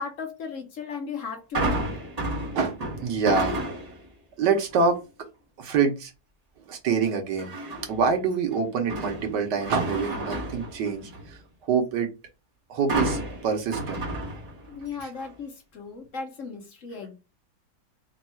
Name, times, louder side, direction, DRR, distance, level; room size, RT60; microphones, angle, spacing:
voice 1, 0.0-1.9 14.7-17.1, left 5 dB, 55° left, 3 dB, 1.1 m, -36 dB
sound 1, 1.5-4.1 4.5-4.9 7.4-8.1 8.5-11.4 12.9-14.8 15.2-15.3, right 1 dB, 30° right, 1.0 m, -31 dB
voice 2, 2.5-3.6 4.4-5.0 5.6-6.1 6.7-7.5 7.9-11.4 11.7-12.1 12.7-14.1 15.0-15.1, right 5 dB, 85° right, 4 dB, 1.5 m, -25 dB
3.6 x 2.3 x 4.2 m, 0.28 s
omnidirectional pair, 1.8 m